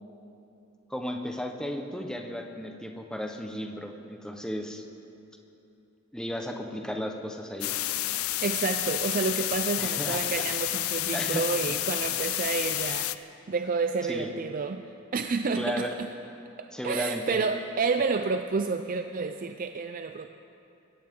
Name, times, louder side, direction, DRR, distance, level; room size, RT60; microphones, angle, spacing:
voice 1, 0.9-4.8 6.1-7.7 9.8-10.5 11.1-11.8 14.1-14.3 15.6-15.9 16.7-17.4, equal, 5° left, 3 dB, 1.1 m, -34 dB
sound 1, 7.6-13.2, left 15 dB, 75° left, 0.5 m, -30 dB
voice 2, 8.4-13.1 13.5-14.8 15.1-16.1 16.6-20.3, right 4 dB, 40° right, 7 dB, 0.4 m, -29 dB
22.0 x 17.0 x 3.7 m, 2.9 s
head